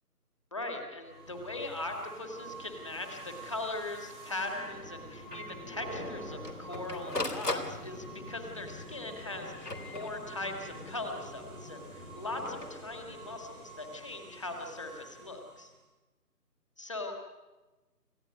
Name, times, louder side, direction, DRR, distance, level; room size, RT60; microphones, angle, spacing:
voice 1, 0.5-15.7 16.8-17.2, left 2 dB, 20° left, 3 dB, 2.0 m, -40 dB
sound 1, 1.0-15.8, right 1 dB, 5° left, 1.7 m, -46 dB
Printer, 3.6-3.7 4.1-4.2 4.5-4.6 5.3-5.6 6.2-8.3 9.1-10.6 12.2-12.7, left 2 dB, 70° left, 3.6 m, -38 dB
29.0 x 15.5 x 9.6 m, 1.2 s
figure-of-eight pair, 165°, 48 cm